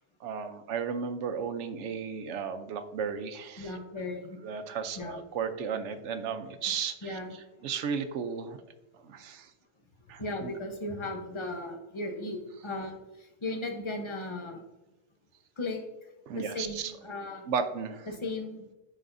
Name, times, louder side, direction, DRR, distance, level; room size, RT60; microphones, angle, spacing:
voice 1, 0.2-3.8 4.4-7.2 7.6-8.6 8.9-9.5 10.1-10.5 16.3-16.9 17.5-18.1, right 6 dB, 85° right, 9 dB, 1.0 m, -34 dB
voice 2, 3.6-4.4 4.9-5.2 7.0-7.7 10.2-14.6 15.6-15.8 16.3-17.4 18.1-18.6, left 2 dB, 30° left, 3 dB, 0.8 m, -36 dB
10.0 x 4.1 x 2.6 m, 1.0 s
omnidirectional pair, 1.2 m